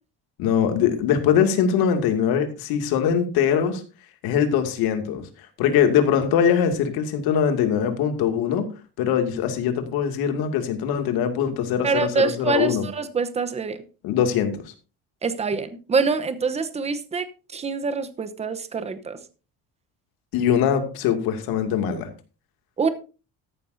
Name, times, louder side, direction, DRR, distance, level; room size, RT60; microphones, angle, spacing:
voice 1, 0.4-3.8 4.2-5.2 5.6-8.7 9.0-12.9 14.0-14.5 20.3-22.1, left 8 dB, 80° left, 6 dB, 2.4 m, -22 dB
voice 2, 11.8-13.8 15.2-17.3 17.5-19.2 22.8-22.9, right 4 dB, 20° right, 11 dB, 0.9 m, -25 dB
14.0 x 11.5 x 2.7 m, 0.33 s
cardioid pair, 165°, 36 cm